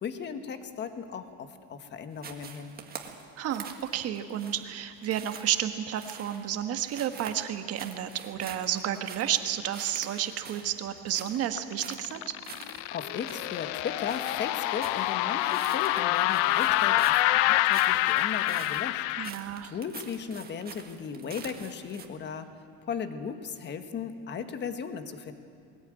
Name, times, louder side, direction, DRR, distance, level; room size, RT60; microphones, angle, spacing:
voice 1, 0.0-2.8 12.9-22.5 22.8-25.3, left 6 dB, 30° left, 9 dB, 1.4 m, -37 dB
sound 1, 2.2-22.1, right 6 dB, 25° right, 1.8 m, -46 dB
voice 2, 3.4-12.2 19.2-19.7, right 10 dB, 45° right, 8 dB, 1.4 m, -31 dB
sound 2, 11.6-19.3, left 16 dB, 80° left, 0.7 m, -26 dB
21.0 x 17.0 x 9.0 m, 2.3 s
cardioid pair, 145°, 34 cm